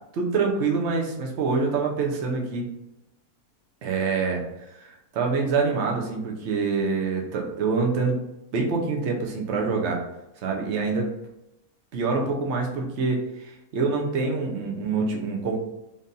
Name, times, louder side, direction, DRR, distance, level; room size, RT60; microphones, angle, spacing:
voice 1, 0.1-2.6 3.8-8.2 8.5-10.0 10.4-11.1 11.9-15.6, right 4 dB, 55° right, 0 dB, 1.0 m, -26 dB
3.7 x 2.6 x 4.0 m, 0.87 s
omnidirectional pair, 1.5 m